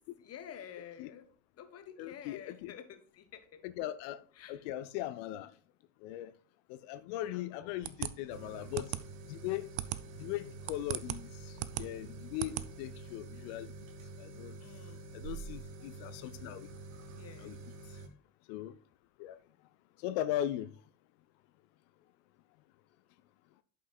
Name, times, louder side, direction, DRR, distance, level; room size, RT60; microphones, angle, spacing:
voice 1, 0.2-3.6 4.3-4.7 7.3-7.9 14.6-15.1 17.1-17.6, left 9 dB, 35° left, 1.1 m, -50 dB
voice 2, 2.0-2.7 3.6-4.2 4.5-5.5 6.0-6.3 6.7-8.9 9.3-9.7 10.2-13.7 14.2-14.6 15.1-16.7 17.4-17.6 18.5-18.8 19.2-19.4 20.0-20.7, left 13 dB, 50° left, 0.5 m, -39 dB
sound 1, 7.8-13.1, right 15 dB, 35° right, 0.4 m, -39 dB
sound 2, 8.3-18.1, right 3 dB, 70° right, 1.0 m, -48 dB
11.0 x 5.5 x 2.3 m
figure-of-eight pair, 65°, 42 cm